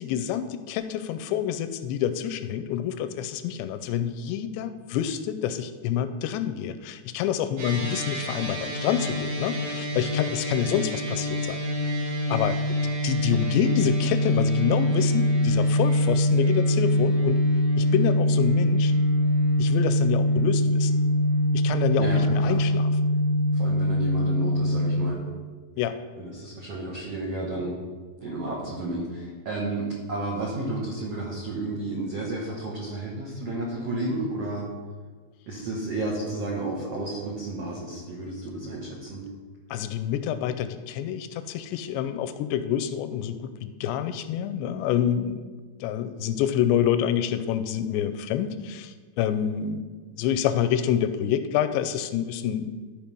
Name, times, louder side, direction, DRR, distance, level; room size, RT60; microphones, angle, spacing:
voice 1, 0.0-11.9 12.3-12.8 13.0-17.4 17.8-18.9 19.6-21.0 21.5-22.9 25.8-26.0 39.7-45.5 45.8-49.8 50.2-52.7, left 9 dB, 85° left, 11 dB, 2.7 m, -27 dB
sound 1, 7.6-25.0, left 1 dB, 60° right, 3.7 m, -24 dB
voice 2, 22.0-22.6 23.5-25.2 26.2-27.8 28.2-34.7 35.5-39.3, right 2 dB, 85° right, -3 dB, 1.4 m, -32 dB
13.0 x 4.7 x 5.4 m, 1.4 s
omnidirectional pair, 5.0 m